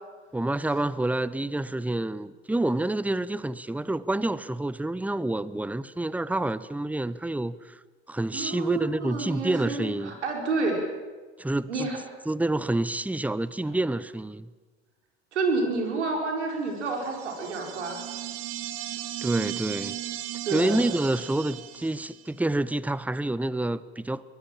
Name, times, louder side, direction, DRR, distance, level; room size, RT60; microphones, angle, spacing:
voice 1, 0.3-7.8 8.1-10.2 11.4-11.9 12.3-14.5 19.2-20.0 20.5-24.2, right 2 dB, 5° right, 0.9 m, -28 dB
voice 2, 8.3-10.8 11.7-12.0 15.3-18.0 20.4-20.8, right 3 dB, 90° right, 5.0 m, -29 dB
sound 1, 16.9-22.3, right 13 dB, 65° right, 1.8 m, -36 dB
23.0 x 21.0 x 7.4 m
hypercardioid pair, 70°, 33 cm